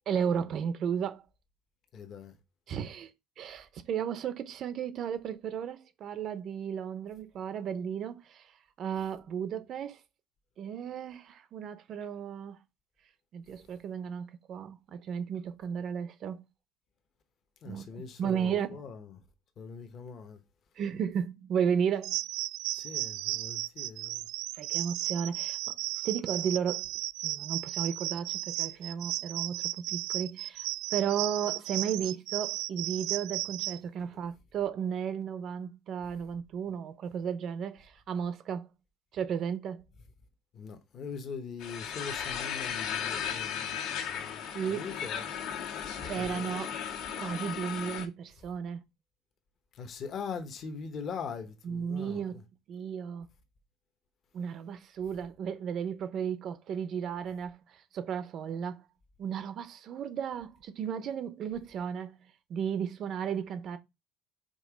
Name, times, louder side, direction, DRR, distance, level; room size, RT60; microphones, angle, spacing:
voice 1, 0.1-1.2 2.7-3.1 3.4-8.5 8.8-10.0 10.6-12.6 13.3-16.4 17.6-18.8 20.8-22.2 24.5-25.8 26.0-26.9 27.2-38.7 39.1-39.8 44.5-44.9 46.0-46.8 47.2-48.8 51.6-52.4 52.7-53.3 54.3-58.8 59.2-62.1 62.5-63.8, right 7 dB, 40° right, 0.6 m, -34 dB
voice 2, 1.9-2.3 17.6-19.2 19.6-20.4 22.7-24.3 34.1-34.2 40.5-45.2 45.5-45.6 46.2-46.4 49.7-52.2, left 5 dB, 35° left, 0.9 m, -42 dB
sound 1, 22.0-33.8, right 18 dB, 75° right, 0.3 m, -35 dB
sound 2, 41.6-48.1, left 8 dB, 70° left, 1.5 m, -36 dB
5.3 x 3.7 x 4.9 m
cardioid pair, 165°, 0 cm